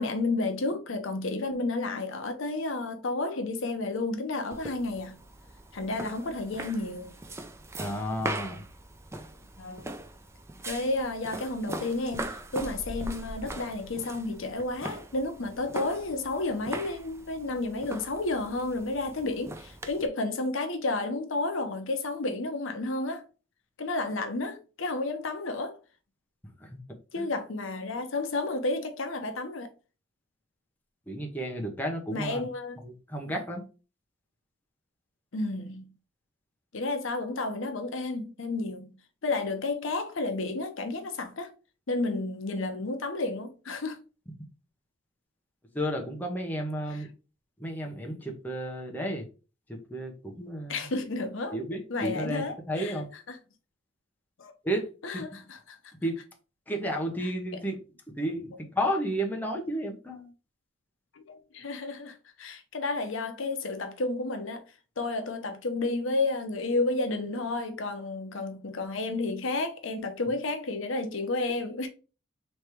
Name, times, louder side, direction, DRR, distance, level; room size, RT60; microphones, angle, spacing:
voice 1, 0.0-5.2 5.7-7.1 9.6-9.9 10.7-23.2 23.8-25.8 27.1-29.7 32.1-32.8 35.3-35.9 36.7-38.9 39.2-41.5 41.9-44.0 46.9-47.1 50.7-51.6 51.9-53.4 54.4-54.5 55.0-55.9 57.2-57.3 61.2-64.6 65.0-71.9, left 2 dB, 65° left, 0.7 m, -31 dB
sound 1, 4.5-20.1, right 2 dB, 15° right, 0.3 m, -41 dB
voice 2, 7.8-8.6 26.6-26.8 27.2-27.3 31.1-32.4 32.8-33.6 45.7-47.1 47.6-49.3 49.7-50.8 51.5-53.1 54.6-55.2 56.0-56.2 56.7-57.8 58.2-60.3, equal, 10° left, 0.8 m, -32 dB
3.4 x 3.2 x 4.4 m
head